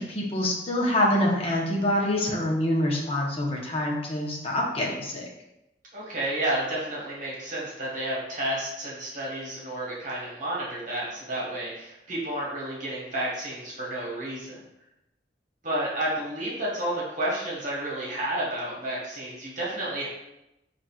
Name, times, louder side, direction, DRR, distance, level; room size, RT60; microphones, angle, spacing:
voice 1, 0.0-5.3, left 1 dB, 35° left, -2 dB, 0.8 m, -26 dB
voice 2, 5.9-14.6 15.6-20.1, right 1 dB, 45° right, -5 dB, 1.2 m, -31 dB
5.8 x 2.5 x 2.3 m, 0.89 s
head